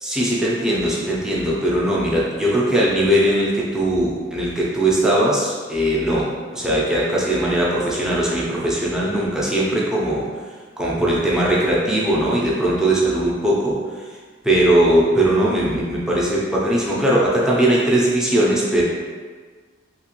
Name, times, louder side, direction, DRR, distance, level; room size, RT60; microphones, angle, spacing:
voice 1, 0.0-10.3 10.8-13.8 14.4-18.8, right 1 dB, 5° right, -6 dB, 0.5 m, -19 dB
3.1 x 2.8 x 2.9 m, 1.5 s
head